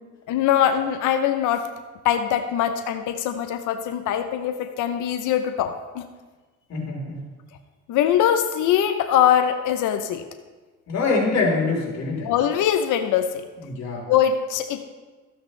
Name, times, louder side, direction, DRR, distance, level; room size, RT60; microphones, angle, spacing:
voice 1, 0.3-1.7 2.0-6.0 7.9-10.2 12.2-13.4 14.1-14.8, left 10 dB, 85° left, 8 dB, 0.7 m, -22 dB
voice 2, 6.7-7.2 10.9-12.3 13.6-14.0, left 3 dB, 60° left, -3 dB, 4.0 m, -24 dB
14.5 x 8.9 x 3.2 m, 1.3 s
cardioid pair, 90°, 30 cm